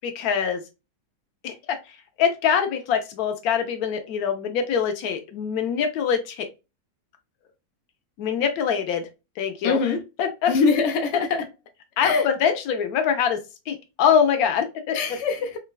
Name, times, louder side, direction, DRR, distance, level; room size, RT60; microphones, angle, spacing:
voice 1, 0.0-0.6 1.4-1.8 2.2-6.5 8.2-9.1 9.4-9.8 10.2-10.5 12.0-13.4 13.7-15.0, left 7 dB, 70° left, 0.9 m, -23 dB
voice 2, 9.6-10.0 10.5-11.4 12.0-12.2 14.9-15.6, left 5 dB, 90° left, 0.6 m, -23 dB
3.8 x 2.2 x 2.2 m
omnidirectional pair, 2.0 m